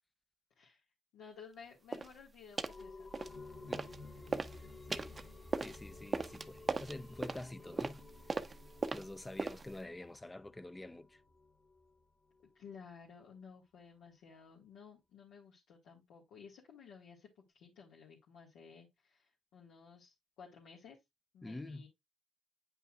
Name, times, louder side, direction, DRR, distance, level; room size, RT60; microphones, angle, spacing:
voice 1, 1.1-3.1 12.5-17.3 17.5-21.0 21.3-21.9, left 6 dB, 85° left, 1.7 m, -55 dB
sound 1, 1.9-2.1 2.6-2.8 3.1-4.0 4.3-9.8, right 4 dB, 30° right, 0.6 m, -39 dB
sound 2, 2.7-12.0 12.4-12.5, left 3 dB, 35° left, 2.0 m, -53 dB
voice 2, 5.6-8.0 8.3-8.5 8.9-11.2 21.4-21.9, left 2 dB, 15° left, 0.5 m, -47 dB
9.2 x 5.5 x 2.4 m
cardioid pair, 90°, 0 cm